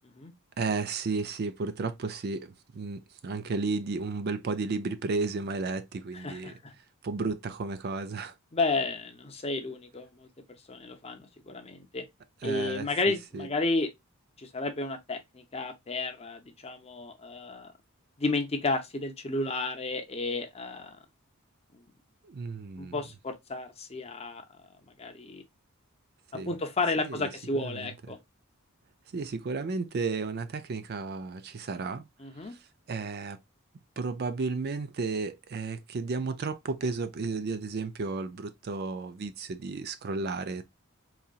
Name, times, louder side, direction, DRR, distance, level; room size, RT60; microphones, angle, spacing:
voice 1, 0.6-6.5 7.0-8.3 12.4-13.5 22.2-23.0 26.3-26.5 27.0-27.3 27.6-27.9 29.1-32.1 32.4-33.4 34.0-40.6, right 4 dB, 45° right, 0.4 m, -33 dB
voice 2, 6.2-6.7 8.5-10.3 10.7-12.0 12.4-13.9 14.4-17.7 18.2-21.0 21.7-21.8 22.8-24.4 25.0-25.4 26.3-28.2 32.2-32.6, left 3 dB, 25° left, 0.7 m, -32 dB
4.0 x 2.8 x 2.3 m
head